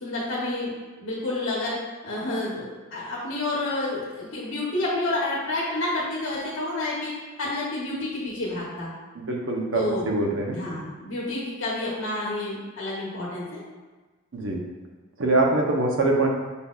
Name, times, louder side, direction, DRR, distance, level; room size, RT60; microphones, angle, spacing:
voice 1, 0.0-0.7 1.0-1.8 2.0-7.1 7.4-8.9 9.7-10.1 10.5-13.6, left 2 dB, 70° left, -6 dB, 1.0 m, -29 dB
voice 2, 9.1-10.6 14.3-14.6 15.2-16.3, right 2 dB, 70° right, 0 dB, 0.8 m, -23 dB
5.3 x 4.2 x 2.4 m, 1.3 s
head